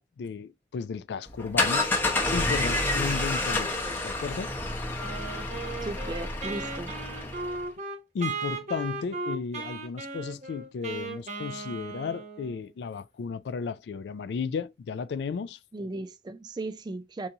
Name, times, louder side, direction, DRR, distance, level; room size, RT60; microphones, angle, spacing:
voice 1, 0.0-3.7 4.0-4.5 8.1-15.6, left 5 dB, 70° left, 0.3 m, -34 dB
sound 1, 1.3-7.6, left 2 dB, 10° left, 0.7 m, -29 dB
Wind instrument woodwind instrument, 5.0-12.7, right 3 dB, 40° right, 0.8 m, -37 dB
voice 2, 5.8-6.9 15.7-17.3, right 2 dB, 25° right, 0.3 m, -36 dB
4.6 x 2.6 x 2.7 m
head